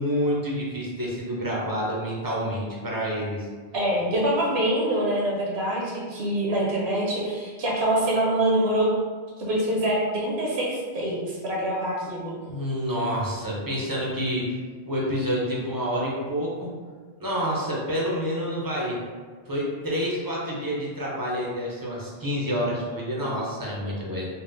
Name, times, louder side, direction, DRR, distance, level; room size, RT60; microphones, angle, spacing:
voice 1, 0.0-3.5 12.5-14.5 14.9-16.7 17.2-19.0 19.5-24.3, equal, 30° right, -5 dB, 0.4 m, -28 dB
voice 2, 3.7-8.9 9.4-12.4, right 1 dB, 75° right, -4 dB, 0.9 m, -25 dB
4.0 x 2.0 x 2.5 m, 1.5 s
omnidirectional pair, 1.1 m